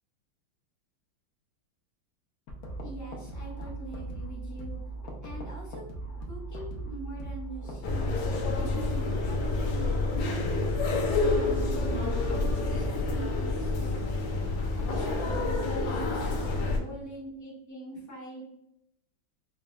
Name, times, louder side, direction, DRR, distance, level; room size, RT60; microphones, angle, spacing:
sound 1, 2.5-12.9, right 2 dB, 60° left, 1.0 m, -39 dB
voice 1, 2.8-4.8 5.2-5.9 6.3-8.1 8.5-10.2 11.0-12.0 12.2-14.0 14.7-18.4, right 1 dB, 25° left, -5 dB, 0.3 m, -42 dB
sound 2, 7.8-16.8, left 3 dB, 80° left, 1.4 m, -28 dB
4.9 x 2.5 x 2.2 m, 0.80 s
omnidirectional pair, 2.1 m